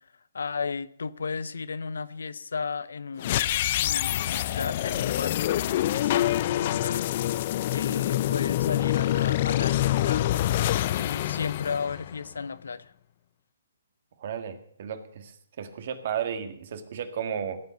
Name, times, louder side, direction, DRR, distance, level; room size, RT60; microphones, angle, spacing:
voice 1, 0.3-7.3 7.7-10.3 10.9-12.9, left 5 dB, 75° left, 16 dB, 0.8 m, -34 dB
sound 1, 3.2-12.4, left 13 dB, 40° left, 0.4 m, -26 dB
voice 2, 14.2-17.6, right 8 dB, 50° right, 8 dB, 1.9 m, -34 dB
16.5 x 7.9 x 6.5 m, 0.63 s
hypercardioid pair, 140°, 0 cm